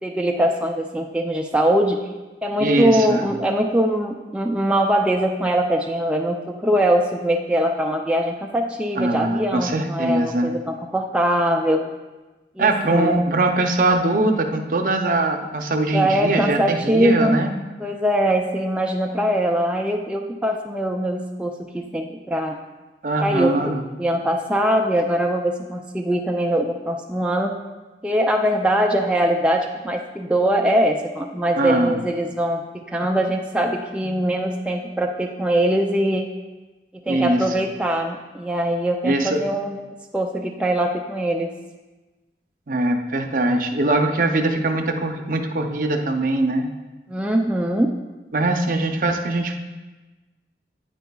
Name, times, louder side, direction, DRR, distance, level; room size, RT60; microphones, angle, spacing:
voice 1, 0.0-2.0 2.4-11.8 12.6-13.2 15.9-17.4 17.8-22.6 23.2-27.5 28.0-36.3 36.9-39.8 40.1-41.5 47.1-47.9, right 1 dB, 5° right, 1 dB, 0.3 m, -22 dB
voice 2, 2.6-3.3 9.0-10.5 12.6-17.5 23.0-23.8 31.6-32.0 37.1-37.4 39.0-39.4 42.7-46.7 48.3-49.6, right 2 dB, 50° right, 5 dB, 0.6 m, -21 dB
9.2 x 9.1 x 2.3 m, 1.2 s
head